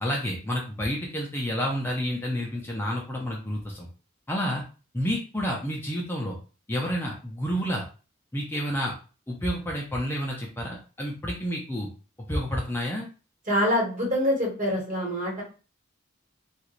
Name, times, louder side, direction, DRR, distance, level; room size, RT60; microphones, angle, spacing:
voice 1, 0.0-3.9 4.3-4.6 4.9-6.4 6.7-7.8 8.3-8.9 9.3-11.9 12.3-13.1, equal, 10° left, -2 dB, 0.4 m, -29 dB
voice 2, 13.5-15.4, equal, 40° right, -3 dB, 1.3 m, -25 dB
2.9 x 2.4 x 3.0 m, 0.35 s
head